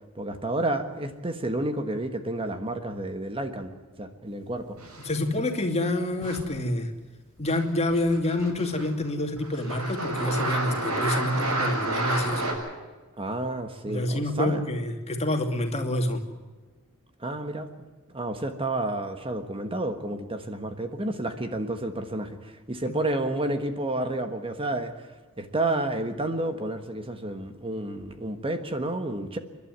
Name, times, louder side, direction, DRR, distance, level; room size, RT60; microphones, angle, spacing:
voice 1, 0.1-3.7 4.0-4.8 13.2-14.6 17.2-17.7 18.1-29.4, right 2 dB, 25° right, 8 dB, 1.4 m, -30 dB
sound 1, 4.8-5.3 6.2-6.5 7.4-7.6 7.9-9.0 9.4-12.5, right 2 dB, 85° right, 6.9 m, -30 dB
voice 2, 5.0-6.9 7.4-12.6 13.9-16.2 22.9-23.0, left 1 dB, 30° left, 5 dB, 2.6 m, -27 dB
30.0 x 12.0 x 9.4 m, 1.3 s
head